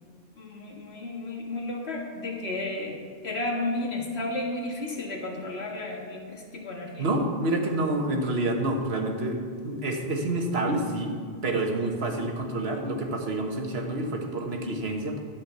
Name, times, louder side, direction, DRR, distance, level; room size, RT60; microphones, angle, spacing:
voice 1, 0.4-7.1, left 2 dB, 90° left, 0 dB, 1.9 m, -33 dB
voice 2, 7.0-11.2 11.4-15.2, right 2 dB, 75° right, 2 dB, 1.6 m, -28 dB
12.0 x 5.2 x 8.0 m, 2.1 s
omnidirectional pair, 1.0 m